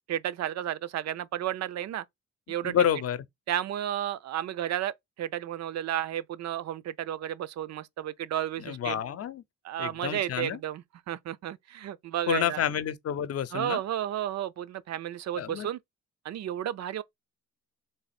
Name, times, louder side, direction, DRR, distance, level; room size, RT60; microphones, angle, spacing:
voice 1, 0.1-2.0 2.5-2.8 3.5-9.0 9.6-12.6 13.5-15.8 16.2-17.0, right 11 dB, 60° right, 0.6 m, -32 dB
voice 2, 2.6-3.2 8.6-9.4 9.8-10.6 12.3-13.8 15.4-15.7, left 9 dB, 55° left, 0.7 m, -29 dB
3.4 x 3.0 x 4.2 m
cardioid pair, 90°, 30 cm